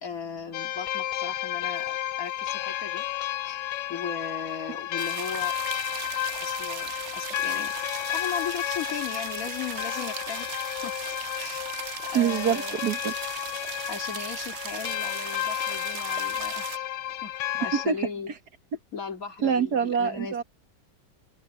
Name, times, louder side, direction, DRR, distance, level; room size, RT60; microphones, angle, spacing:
voice 1, 0.0-3.0 3.4-5.5 6.4-7.7 8.1-11.0 11.3-11.7 12.1-12.8 13.9-16.8 17.2-18.3 18.9-20.4, left 6 dB, 50° left, 2.6 m, -37 dB
sound 1, 0.5-17.9, left 13 dB, 90° left, 1.4 m, -32 dB
sound 2, 5.0-16.8, right 11 dB, 80° right, 0.6 m, -38 dB
voice 2, 12.1-13.1 17.7-18.0 19.4-20.4, right 7 dB, 65° right, 2.0 m, -25 dB
open air
omnidirectional pair, 1.9 m